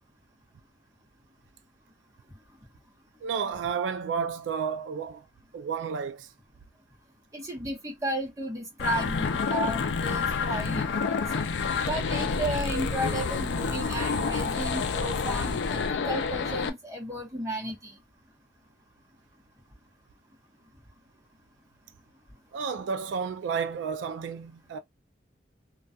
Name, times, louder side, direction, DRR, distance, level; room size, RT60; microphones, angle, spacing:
voice 1, 3.2-5.2 5.5-6.3 22.5-24.8, right 6 dB, 85° right, 0.3 m, -31 dB
voice 2, 7.3-11.2 11.5-18.0, right 1 dB, 20° right, 0.9 m, -34 dB
sound 1, 8.8-16.7, left 5 dB, 80° left, 0.4 m, -28 dB
2.3 x 2.2 x 2.6 m
head